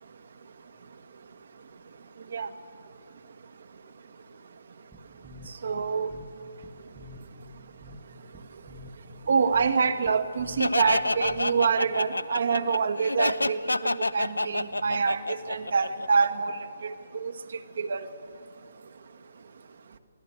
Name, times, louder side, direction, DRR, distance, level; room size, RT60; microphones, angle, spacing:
sound 1, 4.9-11.8, left 1 dB, 10° right, 1.3 m, -49 dB
voice 1, 5.6-6.1 9.3-13.6 13.9-17.3 17.8-18.0, right 5 dB, 55° right, 8 dB, 1.4 m, -26 dB
Laughter, 10.6-16.3, left 2 dB, 80° left, 0.6 m, -28 dB
24.0 x 17.0 x 7.6 m, 2.2 s
figure-of-eight pair, 135°, 0 cm